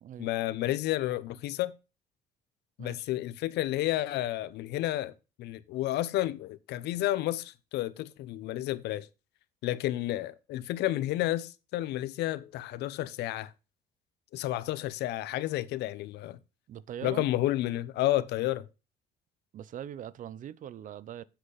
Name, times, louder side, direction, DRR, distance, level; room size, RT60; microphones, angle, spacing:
voice 1, 0.2-1.7 2.8-5.1 5.4-9.1 9.6-13.5 14.3-16.4 17.0-18.7, left 15 dB, 80° left, 0.8 m, -31 dB
voice 2, 16.7-17.3 19.5-21.2, right 10 dB, 50° right, 0.6 m, -41 dB
8.2 x 8.1 x 4.0 m
cardioid pair, 110°, 17 cm